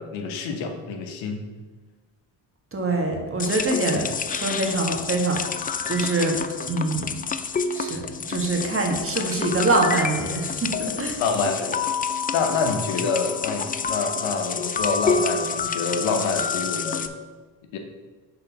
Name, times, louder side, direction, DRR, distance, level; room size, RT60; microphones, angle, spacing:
voice 1, 0.0-1.4 3.9-4.0 11.2-11.9 12.3-17.1 17.7-17.8, left 4 dB, 75° left, 5 dB, 1.1 m, -27 dB
voice 2, 2.7-5.6 5.9-7.2 7.7-11.2, right 2 dB, 25° right, 1 dB, 1.6 m, -25 dB
sound 1, 3.4-17.1, left 5 dB, 20° left, 0.3 m, -28 dB
6.2 x 3.9 x 5.8 m, 1.3 s
supercardioid pair, 70°, 47 cm